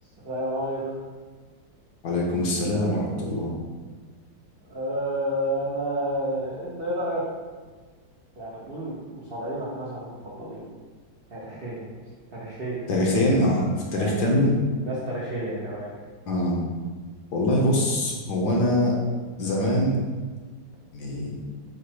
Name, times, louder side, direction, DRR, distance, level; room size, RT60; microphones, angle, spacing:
voice 1, 0.2-0.8 4.7-7.2 8.4-10.6 11.3-11.9 12.3-12.8 13.9-14.2 14.8-15.9, right 1 dB, 60° right, -7 dB, 0.6 m, -30 dB
voice 2, 2.0-3.5 12.9-14.5 16.3-16.6 17.3-19.0 19.4-19.9 20.9-21.4, left 1 dB, 65° left, -2 dB, 1.2 m, -23 dB
4.9 x 2.0 x 4.4 m, 1.4 s
omnidirectional pair, 2.0 m